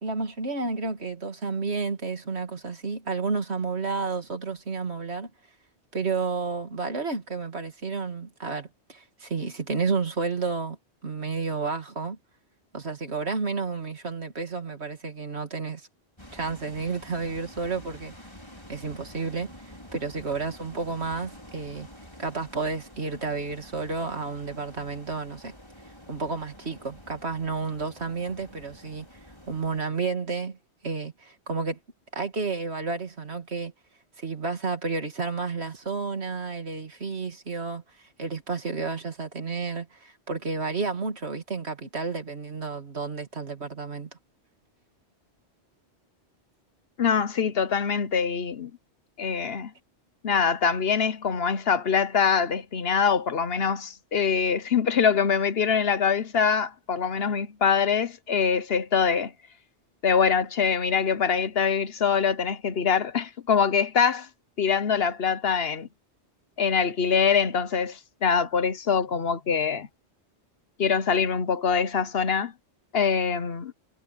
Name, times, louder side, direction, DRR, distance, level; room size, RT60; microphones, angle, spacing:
voice 1, 0.0-5.3 5.9-10.8 11.0-12.2 12.7-15.9 16.3-18.3 18.7-21.9 22.2-25.5 26.1-29.2 29.5-30.6 30.8-31.8 32.1-33.7 34.2-44.1, right 4 dB, 65° right, 2.6 m, -31 dB
sound 1, 16.2-29.8, left 1 dB, 25° left, 5.1 m, -48 dB
voice 2, 47.0-48.7 49.2-49.7 50.2-59.3 60.0-64.3 64.6-65.9 66.6-69.9 70.8-72.5 72.9-73.7, left 6 dB, 60° left, 1.1 m, -24 dB
omnidirectional pair, 1.2 m